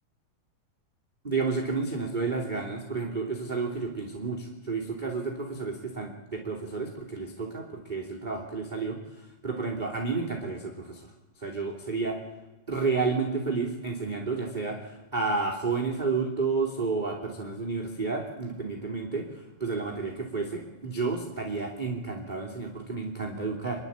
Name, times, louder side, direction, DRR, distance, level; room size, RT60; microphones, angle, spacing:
voice 1, 1.2-11.1 11.4-12.2 12.7-19.3 19.6-23.9, right 4 dB, 15° right, 1 dB, 2.3 m, -31 dB
28.0 x 11.5 x 8.7 m, 1.1 s
omnidirectional pair, 4.3 m